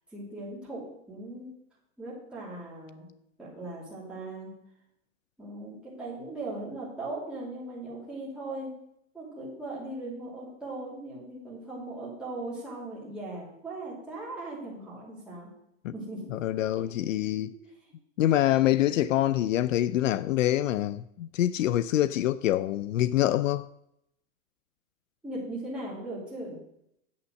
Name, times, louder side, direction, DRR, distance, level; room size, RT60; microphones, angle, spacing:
voice 1, 0.1-1.5 2.0-3.1 3.4-4.5 5.4-8.7 9.1-15.5 15.9-16.3 17.5-17.6 18.9-19.0 25.2-26.6, right 2 dB, ahead, 2.8 m, -39 dB
voice 2, 16.3-17.5 18.2-23.7, left 13 dB, 70° left, 0.5 m, -25 dB
8.7 x 7.2 x 6.4 m
supercardioid pair, 170°, 41 cm